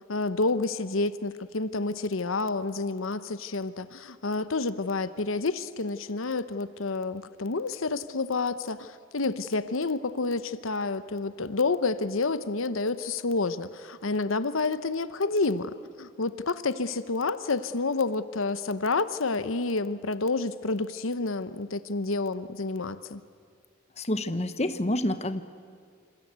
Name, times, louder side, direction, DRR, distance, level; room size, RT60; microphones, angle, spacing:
voice 1, 0.1-23.2, left 3 dB, 75° left, 14 dB, 0.9 m, -29 dB
voice 2, 24.0-25.4, left 1 dB, 30° left, 11 dB, 1.1 m, -28 dB
27.0 x 27.0 x 8.2 m, 2.3 s
head